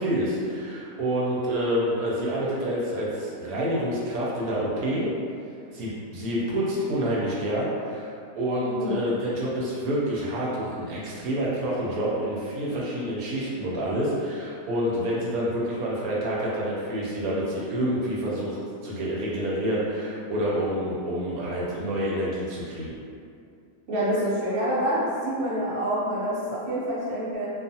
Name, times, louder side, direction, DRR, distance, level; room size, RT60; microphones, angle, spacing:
voice 1, 0.0-5.1 5.7-18.6 18.8-23.0, equal, 80° right, -6 dB, 1.1 m, -28 dB
voice 2, 8.6-9.0 23.9-27.5, equal, 55° right, -8 dB, 0.9 m, -27 dB
2.4 x 2.3 x 2.6 m, 2.4 s
omnidirectional pair, 1.5 m